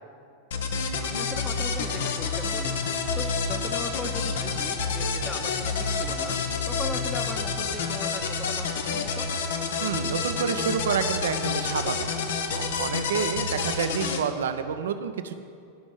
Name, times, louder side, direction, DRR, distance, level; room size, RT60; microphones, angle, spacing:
sound 1, 0.5-14.2, left 5 dB, 60° left, 1.0 m, -28 dB
voice 1, 1.0-9.4, left 2 dB, 15° left, 7 dB, 1.0 m, -39 dB
voice 2, 9.8-12.1 12.6-15.3, right 7 dB, 60° right, 10 dB, 0.7 m, -29 dB
13.0 x 6.2 x 8.9 m, 2.4 s
figure-of-eight pair, 90°, 0 cm